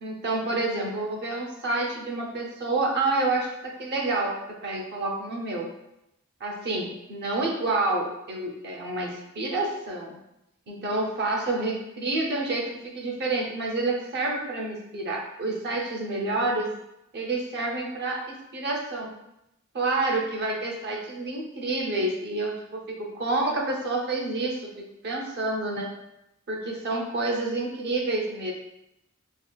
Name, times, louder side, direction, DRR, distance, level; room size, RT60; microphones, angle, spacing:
voice 1, 0.0-4.3 4.6-5.7 6.4-10.2 10.7-16.7 17.1-19.1 19.7-25.9 26.5-28.5, right 2 dB, 50° right, -1 dB, 0.6 m, -28 dB
3.5 x 2.4 x 2.3 m, 0.86 s
head